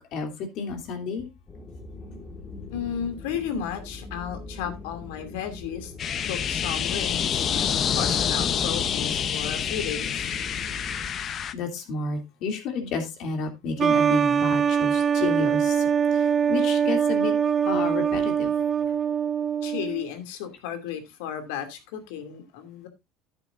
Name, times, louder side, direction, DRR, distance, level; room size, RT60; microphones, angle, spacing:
voice 1, 0.1-1.3 11.5-16.2 16.5-17.3 17.6-18.5, left 4 dB, 50° left, 2.8 m, -31 dB
sound 1, 1.5-11.1, left 2 dB, 20° left, 1.8 m, -42 dB
voice 2, 2.7-5.9 6.2-10.3 19.6-22.9, left 8 dB, 85° left, 2.5 m, -34 dB
sound 2, 6.0-11.5, left 8 dB, 35° left, 0.8 m, -27 dB
sound 3, 13.8-20.1, right 7 dB, 25° right, 0.5 m, -23 dB
11.0 x 9.9 x 2.5 m
cardioid pair, 140°, 0 cm